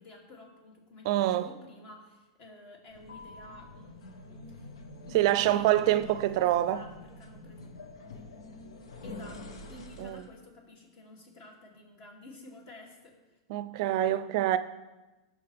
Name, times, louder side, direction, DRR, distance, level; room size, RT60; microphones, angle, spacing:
voice 1, 0.0-4.7 5.0-7.7 8.1-8.3 9.0-13.4, left 2 dB, 45° left, 2.7 m, -51 dB
voice 2, 1.1-1.5 5.1-6.8 10.0-10.2 13.5-14.6, right 13 dB, 60° right, 0.4 m, -25 dB
sound 1, 2.9-10.4, left 2 dB, 90° left, 1.1 m, -46 dB
15.5 x 6.2 x 3.5 m
hypercardioid pair, 130°, 3 cm